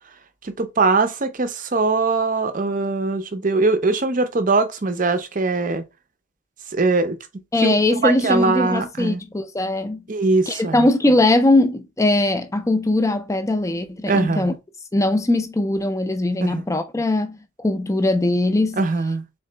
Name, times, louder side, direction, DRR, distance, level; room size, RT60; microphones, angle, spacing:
voice 1, 0.4-5.8 6.7-7.2 7.6-7.7 8.0-9.2 10.1-10.9 14.1-14.5 16.4-16.6 18.8-19.3, right 3 dB, 40° right, 0.5 m, -21 dB
voice 2, 7.5-10.0 10.5-14.5 14.9-18.8, left 2 dB, 15° left, 0.4 m, -20 dB
3.9 x 3.6 x 3.2 m
head